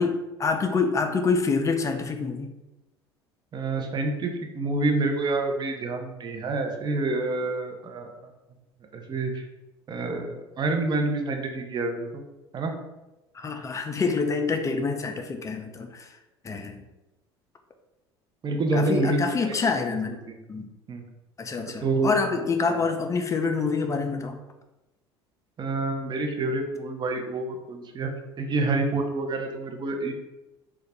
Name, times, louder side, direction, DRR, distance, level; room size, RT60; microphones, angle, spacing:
voice 1, 0.0-2.5 13.3-16.1 16.4-16.8 18.7-20.1 20.5-20.7 21.4-24.4, left 4 dB, 25° left, 5 dB, 0.4 m, -26 dB
voice 2, 3.5-8.1 8.9-9.4 9.9-12.2 12.5-12.7 18.4-19.7 20.3-20.4 20.9-21.0 21.8-22.2 22.7-22.8 25.6-28.1 28.4-30.1, right 2 dB, 30° right, 4 dB, 0.5 m, -27 dB
2.3 x 2.0 x 3.3 m, 1.0 s
hypercardioid pair, 70°, 14 cm